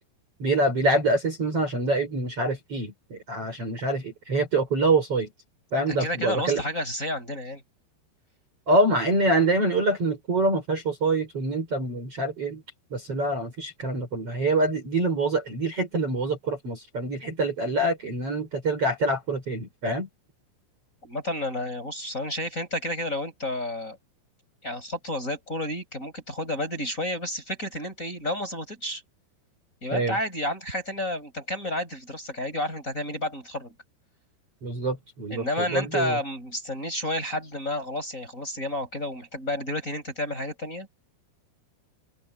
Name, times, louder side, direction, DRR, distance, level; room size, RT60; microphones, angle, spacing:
voice 1, 0.4-5.3 5.7-6.6 8.7-12.6 12.9-20.1 29.9-30.2 34.6-36.2, right 2 dB, 30° right, 5.9 m, -25 dB
voice 2, 5.9-7.6 21.0-24.0 24.6-29.0 29.8-33.7 35.3-40.9, left 1 dB, 15° left, 7.2 m, -31 dB
open air
omnidirectional pair, 5.9 m